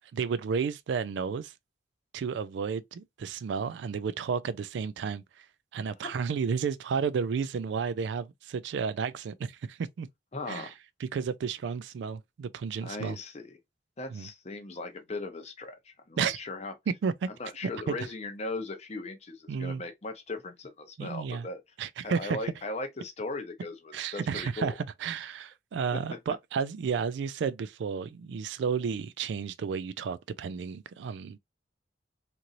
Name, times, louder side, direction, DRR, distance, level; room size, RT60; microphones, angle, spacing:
voice 1, 0.1-1.5 2.1-5.5 5.7-10.1 10.5-10.7 11.0-13.2 14.1-14.3 16.2-16.4 17.0-17.3 17.9-18.0 19.5-19.8 21.0-21.5 21.8-22.4 23.9-24.7 25.0-31.4, right 6 dB, 65° right, 0.3 m, -32 dB
voice 2, 10.3-10.7 12.8-13.5 14.0-16.7 17.4-21.6 22.0-24.8 26.1-26.2, left 2 dB, 35° left, 0.6 m, -38 dB
3.0 x 2.6 x 2.5 m
head